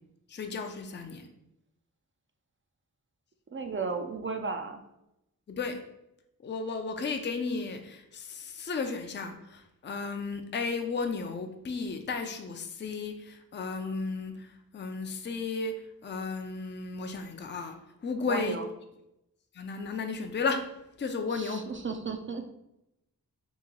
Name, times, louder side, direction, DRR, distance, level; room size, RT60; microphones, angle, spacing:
voice 1, 0.3-1.3 5.5-5.8 6.4-15.7 16.0-17.8 18.0-18.6 19.5-20.6 21.0-21.7, left 4 dB, 30° left, 5 dB, 0.4 m, -34 dB
voice 2, 3.5-4.8 18.2-18.7 21.3-22.5, right 4 dB, 35° right, 6 dB, 0.4 m, -34 dB
2.9 x 2.6 x 3.8 m, 0.86 s
cardioid pair, 45°, 37 cm